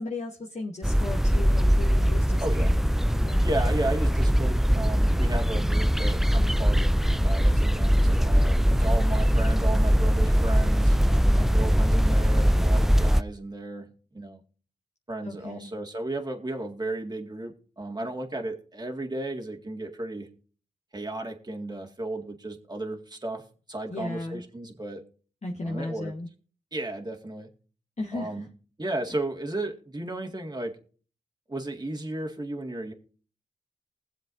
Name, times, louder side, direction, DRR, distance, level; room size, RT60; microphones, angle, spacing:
voice 1, 0.0-2.8 3.2-3.5 15.2-15.7 23.9-24.4 25.4-26.3 28.0-28.4, left 2 dB, 40° left, -2 dB, 1.4 m, -36 dB
sound 1, 0.8-13.2, equal, ahead, 0.4 m, -21 dB
voice 2, 2.4-2.7 3.4-7.0 7.2-13.9 14.1-14.4 15.1-20.3 20.9-23.4 23.7-25.0 25.6-26.1 26.7-27.5 28.1-28.5 28.8-30.7 31.5-32.9, right 2 dB, 25° right, 2 dB, 2.0 m, -34 dB
20.5 x 7.4 x 2.7 m, 0.41 s
cardioid pair, 45°, 17 cm